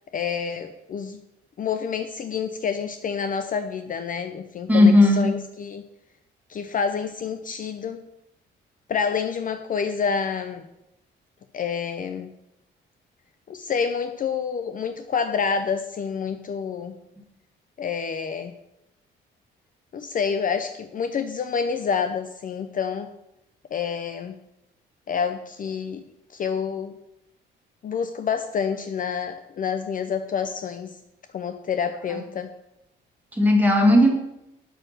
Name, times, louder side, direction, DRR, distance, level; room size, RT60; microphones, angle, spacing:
voice 1, 0.1-1.2 1.6-5.8 6.5-8.0 8.9-10.7 11.5-12.3 13.5-17.0 17.8-18.5 19.9-23.1 23.7-24.3 25.1-26.0 26.3-26.9 27.8-31.0 31.3-32.5, left 6 dB, 45° left, 9 dB, 0.5 m, -28 dB
voice 2, 4.7-5.3 32.1-32.2 33.3-34.1, left 1 dB, 10° right, 0 dB, 1.8 m, -16 dB
5.9 x 4.6 x 6.5 m, 0.87 s
cardioid pair, 90°, 20 cm